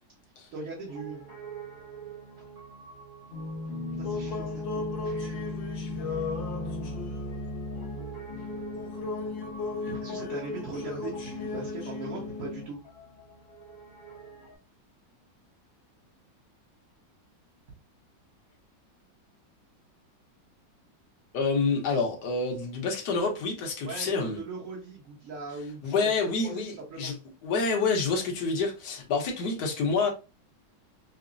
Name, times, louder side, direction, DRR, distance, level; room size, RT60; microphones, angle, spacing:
voice 1, 0.5-1.3 4.0-5.6 9.8-12.8 23.8-26.1 26.4-27.1, right 3 dB, 50° right, 1.2 m, -40 dB
Piano, 0.8-14.6, right 6 dB, 80° right, 2.4 m, -48 dB
sound 1, 3.3-12.7, left 3 dB, 90° left, 1.7 m, -34 dB
voice 2, 21.3-24.4 25.8-27.2 27.4-30.1, left 4 dB, 65° left, 1.5 m, -28 dB
5.9 x 2.1 x 2.5 m
omnidirectional pair, 2.0 m